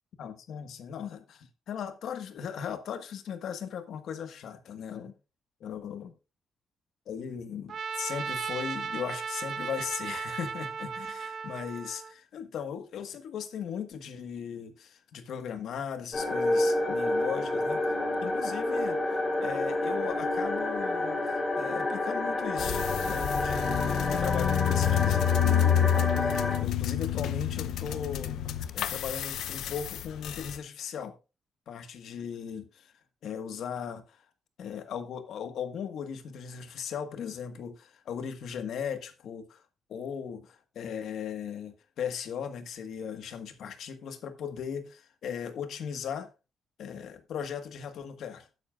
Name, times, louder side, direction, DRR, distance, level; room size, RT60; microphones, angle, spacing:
voice 1, 0.2-5.1 5.6-6.1 7.1-17.9 18.2-19.0 19.4-21.2 21.5-28.3 28.7-31.1 31.7-32.9 33.2-34.2 34.6-39.6 39.9-46.3 46.8-48.5, left 7 dB, 70° left, 1.5 m, -38 dB
Trumpet, 7.7-12.1, right 6 dB, 50° right, 1.4 m, -36 dB
sound 1, 16.1-26.6, left 2 dB, 30° left, 3.8 m, -29 dB
sound 2, 22.6-30.6, left 10 dB, 90° left, 0.6 m, -28 dB
12.5 x 9.8 x 2.4 m
cardioid pair, 150°, 0 cm